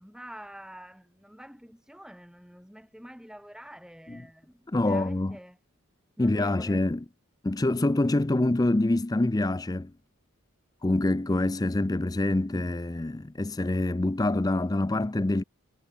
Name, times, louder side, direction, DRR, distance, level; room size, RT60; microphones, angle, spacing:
voice 1, 0.0-5.6 6.2-6.8, equal, 5° right, 4.9 m, -47 dB
voice 2, 4.7-5.4 6.2-7.0 7.4-9.9 10.8-15.4, left 2 dB, 15° left, 0.4 m, -26 dB
head